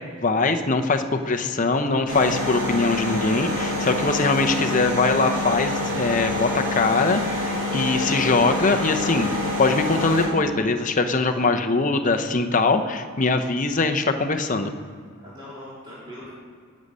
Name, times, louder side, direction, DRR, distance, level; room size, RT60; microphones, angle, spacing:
voice 1, 0.2-9.3 9.6-14.7, left 3 dB, 35° left, 6 dB, 0.7 m, -22 dB
sound 1, 2.1-10.3, left 1 dB, 65° right, 3.6 m, -26 dB
voice 2, 15.2-16.3, left 1 dB, 20° right, -10 dB, 3.3 m, -41 dB
18.5 x 6.4 x 5.4 m, 2.1 s
head